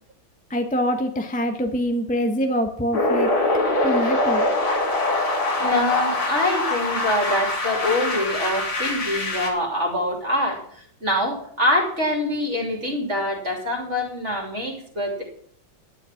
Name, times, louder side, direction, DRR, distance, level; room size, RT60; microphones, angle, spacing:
voice 1, 0.5-3.3 3.8-4.5, equal, 5° left, 4 dB, 0.9 m, -24 dB
sound 1, 2.9-9.5, left 2 dB, 80° left, 3.8 m, -23 dB
voice 2, 5.6-10.6 11.0-15.2, left 1 dB, 35° right, 0 dB, 3.2 m, -24 dB
11.5 x 10.0 x 5.9 m, 0.62 s
omnidirectional pair, 2.2 m